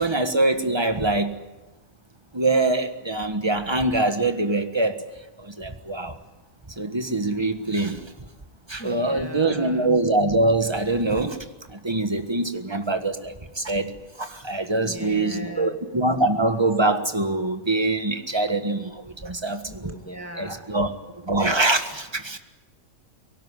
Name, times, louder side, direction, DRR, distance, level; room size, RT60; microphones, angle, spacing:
voice 1, 0.0-1.4 2.3-5.0 5.4-6.2 6.8-8.0 8.7-20.0 20.3-20.9 21.2-22.4, right 2 dB, 20° right, 8 dB, 1.5 m, -24 dB
voice 2, 8.8-9.9 14.8-15.8 19.7-20.6, right 1 dB, 10° left, 4 dB, 2.1 m, -38 dB
23.0 x 18.0 x 9.8 m, 1.1 s
omnidirectional pair, 1.5 m